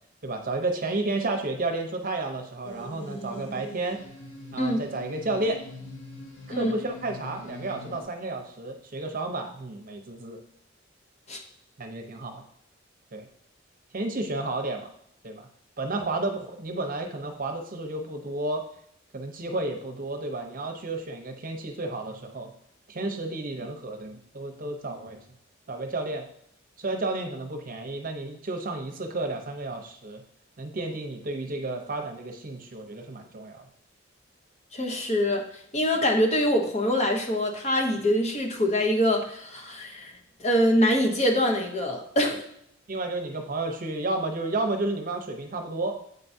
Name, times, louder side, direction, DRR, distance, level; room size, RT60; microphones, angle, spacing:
voice 1, 0.2-4.0 4.5-5.6 6.5-10.4 11.8-12.4 13.1-13.3 13.9-14.9 15.2-15.5 15.8-18.6 19.1-22.5 22.9-25.2 25.7-26.3 26.8-30.2 30.6-33.7 42.9-46.0, right 2 dB, 45° right, 4 dB, 0.7 m, -31 dB
sound 1, 2.6-8.0, left 1 dB, 85° left, 1.9 m, -43 dB
voice 2, 34.7-35.4 35.7-40.1 40.4-42.4, equal, 35° left, 2 dB, 0.8 m, -24 dB
8.0 x 4.5 x 2.7 m, 0.71 s
head